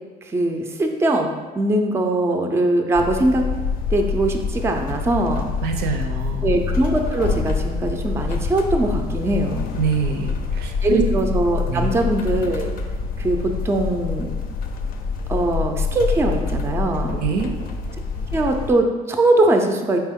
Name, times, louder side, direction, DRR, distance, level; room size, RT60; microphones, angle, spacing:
voice 1, 0.2-1.3 1.6-3.4 3.9-5.5 6.4-9.7 10.8-12.7 13.2-14.4 15.3-17.2 18.3-20.0, right 1 dB, 15° right, 3 dB, 0.4 m, -21 dB
sound 1, 2.9-18.7, left 5 dB, 60° left, 0.5 m, -26 dB
voice 2, 5.6-6.5 9.8-11.0 11.7-11.9 17.1-17.6, right 6 dB, 75° right, 5 dB, 0.5 m, -25 dB
4.5 x 2.9 x 3.5 m, 1.3 s
cardioid pair, 110°, 17 cm